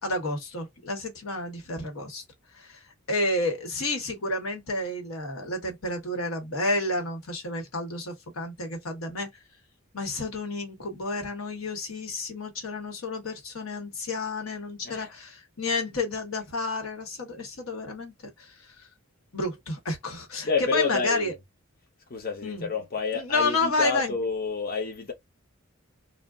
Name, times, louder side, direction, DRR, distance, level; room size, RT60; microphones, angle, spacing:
voice 1, 0.0-2.2 2.5-2.8 3.1-9.3 9.9-18.9 19.3-21.3 22.4-22.7 23.1-24.1, left 2 dB, 85° left, 1.0 m, -30 dB
voice 2, 20.4-21.3 22.1-25.1, left 5 dB, 45° left, 0.7 m, -29 dB
2.3 x 2.0 x 3.6 m
head